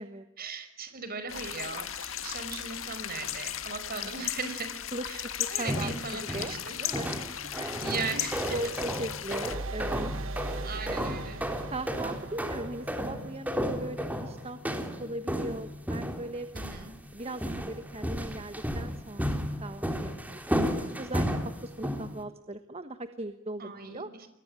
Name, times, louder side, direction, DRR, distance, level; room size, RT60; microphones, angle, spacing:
voice 1, 0.4-4.7 5.1-5.2 5.5-6.8 7.6-8.6 10.6-11.4 16.5-16.9 23.6-24.3, right 4 dB, 50° right, 10 dB, 5.3 m, -38 dB
sound 1, 1.3-9.5, left 10 dB, 90° left, 1.8 m, -36 dB
voice 2, 5.4-5.9 6.3-7.7 8.5-10.1 10.9-11.1 11.7-16.5 17.1-24.1, right 2 dB, 30° right, 10 dB, 1.3 m, -39 dB
sound 2, 5.7-6.7 6.9-22.2, equal, 10° right, 3.4 m, -33 dB
sound 3, 9.5-13.2, right 2 dB, 80° right, 1.3 m, -38 dB
30.0 x 22.0 x 8.9 m, 0.90 s
head